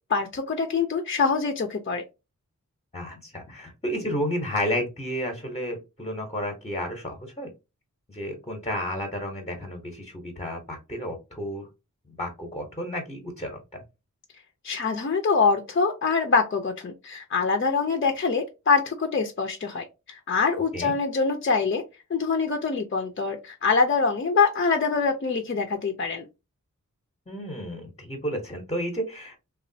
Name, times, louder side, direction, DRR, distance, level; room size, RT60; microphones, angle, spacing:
voice 1, 0.1-2.0 14.6-21.8 22.1-26.2, left 4 dB, 40° left, 0.5 m, -24 dB
voice 2, 2.9-7.5 8.1-11.7 12.1-13.8 20.7-20.9 27.3-29.4, equal, 20° left, 0.9 m, -32 dB
3.1 x 2.4 x 2.6 m
wide cardioid pair, 70°, 32 cm